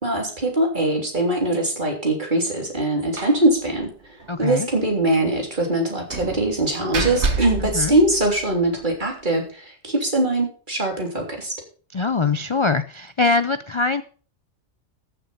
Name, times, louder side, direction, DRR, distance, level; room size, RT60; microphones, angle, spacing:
voice 1, 0.0-11.6, right 1 dB, 40° right, 1 dB, 3.7 m, -22 dB
Slam, 3.2-3.5 3.8-3.9 4.2-4.3 6.1-8.7, right 4 dB, 65° right, 1.8 m, -28 dB
voice 2, 4.3-4.7 7.7-8.0 11.9-14.0, left 4 dB, 40° left, 11 dB, 0.4 m, -22 dB
14.0 x 7.3 x 5.6 m, 0.41 s
omnidirectional pair, 1.2 m